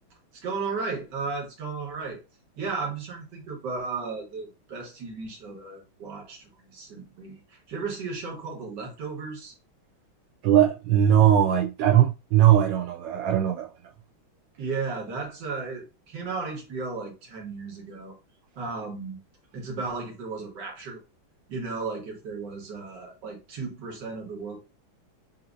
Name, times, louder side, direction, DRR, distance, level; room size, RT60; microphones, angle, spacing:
voice 1, 0.4-2.2 2.6-9.5 14.6-18.2 18.5-19.2 19.5-21.0 21.5-24.6, right 4 dB, 60° right, 2.0 m, -34 dB
voice 2, 10.4-13.7, right 10 dB, 75° right, 1.2 m, -20 dB
7.2 x 2.8 x 2.6 m
omnidirectional pair, 2.2 m